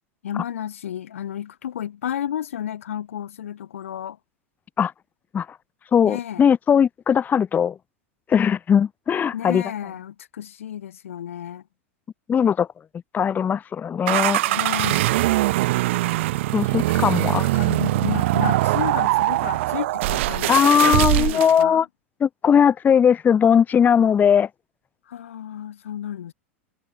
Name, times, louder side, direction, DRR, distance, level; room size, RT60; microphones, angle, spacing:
voice 1, 0.2-4.2 6.1-6.4 9.3-11.6 14.5-15.1 17.4-20.6 20.8-21.8 25.1-26.3, left 10 dB, 75° left, 1.1 m, -32 dB
voice 2, 5.9-7.8 8.3-9.6 12.3-12.7 13.1-14.4 16.5-17.5 20.5-21.9 22.2-24.5, left 8 dB, 25° left, 0.7 m, -19 dB
sound 1, 14.1-21.6, right 18 dB, 65° right, 0.7 m, -22 dB
hypercardioid pair, 90°, 7 cm